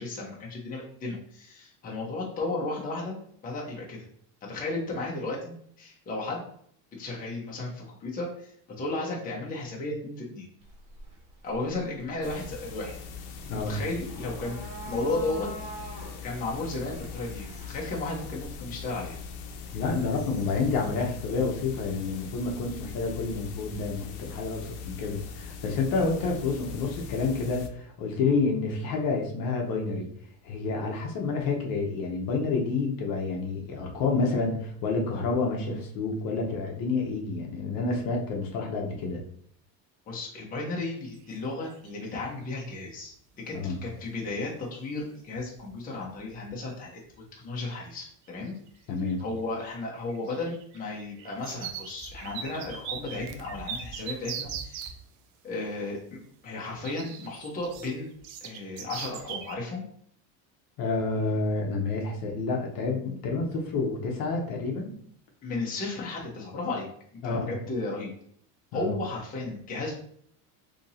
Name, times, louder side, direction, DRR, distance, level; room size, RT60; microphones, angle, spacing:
voice 1, 0.0-3.2 3.4-4.0 4.4-6.4 6.9-10.5 11.4-12.9 13.5-16.0 16.2-19.2 40.1-43.1 43.5-47.0 47.4-48.5 49.2-54.9 55.4-58.1 58.4-59.8 65.4-66.9 67.2-68.1 68.7-69.9, left 2 dB, 20° left, -3 dB, 0.7 m, -34 dB
sound 1, 10.6-21.0, right 1 dB, 50° right, 1.6 m, -46 dB
sound 2, 12.2-27.7, left 6 dB, 75° left, 0.7 m, -41 dB
voice 2, 19.7-30.1 30.4-39.2 43.5-43.8 48.9-49.2 60.8-65.0 67.2-67.5 68.7-68.9, left 4 dB, 50° left, 1 dB, 0.8 m, -29 dB
sound 3, 41.1-41.4 41.7-42.3 44.2-44.3 45.0-45.1 45.3-45.7 46.0-46.5 47.1-47.2 48.3-48.7 49.0-55.0 56.8-59.6, right 8 dB, 70° right, 0.6 m, -40 dB
2.9 x 2.6 x 4.1 m, 0.63 s
cardioid pair, 155°, 44 cm